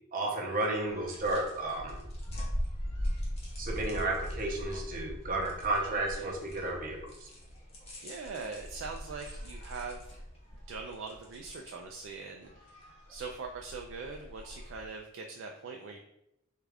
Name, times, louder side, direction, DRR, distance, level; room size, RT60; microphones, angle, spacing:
voice 1, 0.1-2.0 3.6-7.3, right 2 dB, 40° right, 0 dB, 0.7 m, -32 dB
sound 1, 0.7-14.9, equal, 30° left, 0.8 m, -41 dB
voice 2, 5.9-6.3 8.0-10.1 10.7-12.8 13.1-16.0, right 4 dB, 65° right, 2 dB, 0.3 m, -42 dB
3.6 x 2.3 x 3.3 m, 0.83 s
head